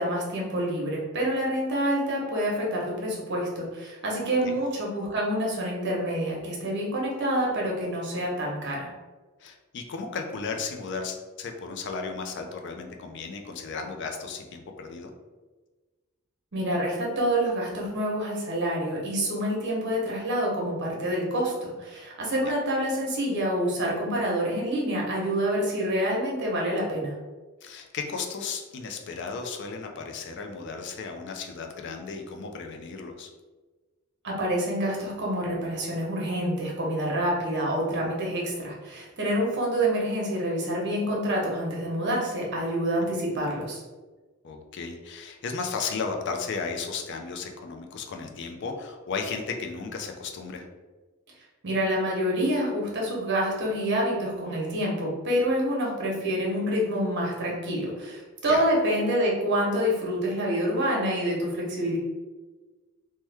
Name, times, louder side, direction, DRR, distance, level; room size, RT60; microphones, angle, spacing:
voice 1, 0.0-8.9 16.5-27.2 34.2-43.8 51.6-62.0, equal, 55° right, -3 dB, 0.8 m, -27 dB
voice 2, 9.4-15.1 22.4-22.5 27.6-33.3 44.4-50.7 58.5-58.7, left 5 dB, 55° left, 4 dB, 0.4 m, -34 dB
3.0 x 2.1 x 3.3 m, 1.3 s
head